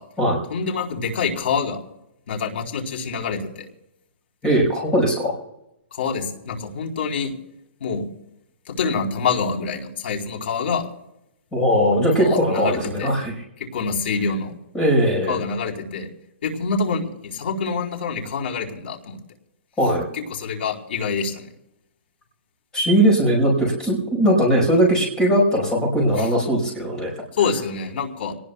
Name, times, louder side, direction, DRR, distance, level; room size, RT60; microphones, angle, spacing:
voice 1, 0.5-1.8 2.3-3.7 5.9-7.3 7.8-8.1 8.7-10.9 11.7-13.1 13.7-14.5 15.3-16.1 16.4-19.2 20.1-21.5 26.2-26.3 27.4-28.3, left 5 dB, 70° left, 0 dB, 4.0 m, -26 dB
voice 2, 4.4-5.4 11.5-13.3 14.7-15.4 19.8-20.0 22.7-27.1, equal, 10° left, -1 dB, 5.3 m, -19 dB
26.0 x 19.0 x 2.3 m, 0.84 s
hypercardioid pair, 175°, 6 cm